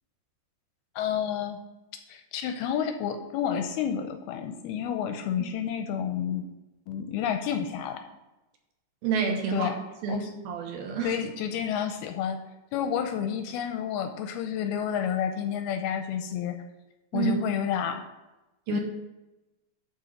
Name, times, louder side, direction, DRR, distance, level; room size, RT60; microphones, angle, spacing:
voice 1, 1.0-1.6 2.1-6.5 6.9-8.0 9.5-9.8 10.1-10.3 11.0-12.4 12.7-16.6 17.1-18.0 18.7-18.8, left 8 dB, 80° left, 7 dB, 2.3 m, -30 dB
voice 2, 9.0-9.7 10.0-11.1 17.1-17.3 18.7-18.8, right 6 dB, 70° right, 2 dB, 2.7 m, -28 dB
11.5 x 4.6 x 6.4 m, 1.0 s
omnidirectional pair, 5.0 m